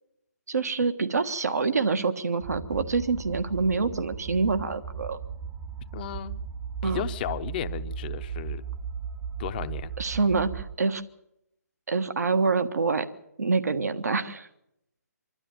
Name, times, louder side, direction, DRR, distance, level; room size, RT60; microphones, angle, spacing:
voice 1, 0.5-5.2 6.8-7.0 10.0-11.0 11.9-13.1 13.4-14.5, right 4 dB, 70° right, 9 dB, 1.5 m, -26 dB
sound 1, 2.4-10.7, right 7 dB, 15° right, 1.0 m, -36 dB
voice 2, 5.9-6.3 6.8-8.6 9.4-9.9, left 10 dB, 35° left, 11 dB, 0.9 m, -34 dB
25.5 x 12.5 x 9.3 m, 0.82 s
figure-of-eight pair, 140°, 9 cm